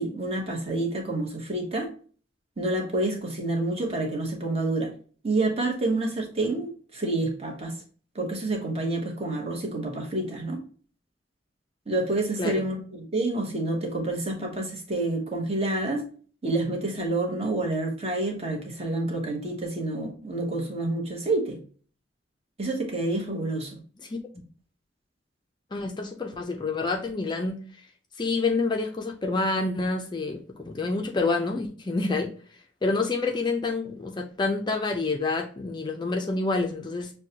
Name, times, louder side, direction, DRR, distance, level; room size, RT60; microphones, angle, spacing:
voice 1, 0.0-1.9 2.6-4.9 5.2-7.8 8.1-10.6 11.9-16.1 16.4-21.6 22.6-23.8, right 2 dB, 30° right, 1.0 m, -28 dB
voice 2, 25.7-27.6 28.2-32.3 32.8-37.1, left 3 dB, 25° left, 0.4 m, -28 dB
6.3 x 2.2 x 2.8 m
head